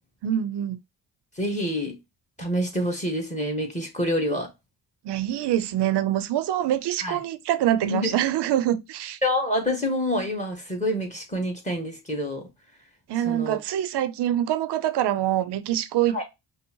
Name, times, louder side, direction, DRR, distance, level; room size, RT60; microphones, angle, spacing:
voice 1, 0.2-0.8 5.0-9.2 13.1-16.2, right 12 dB, 65° right, 0.6 m, -25 dB
voice 2, 1.4-2.0 2.4-4.5 7.0-7.2 7.8-8.1 9.2-12.5 13.2-13.6 16.1-16.2, equal, 15° left, 1.3 m, -27 dB
5.3 x 2.0 x 2.9 m
cardioid pair, 75°, 44 cm